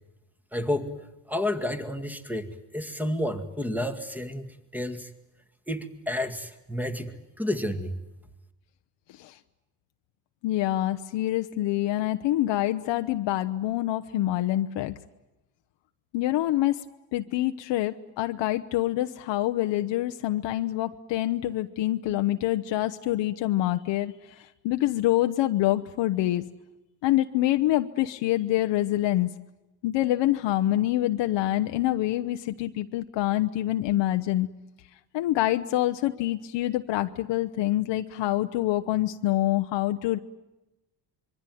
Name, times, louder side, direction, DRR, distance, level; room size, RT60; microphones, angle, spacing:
voice 1, 0.5-0.9 1.3-4.5 4.7-5.1 5.7-7.1 7.4-7.9, left 1 dB, 5° right, 7 dB, 2.1 m, -30 dB
voice 2, 10.4-14.9 16.1-16.8 17.1-26.4 27.0-29.3 29.8-34.5 35.1-40.2, left 15 dB, 70° left, 7 dB, 1.0 m, -26 dB
26.0 x 23.0 x 9.3 m, 1.0 s
cardioid pair, 115°, 45 cm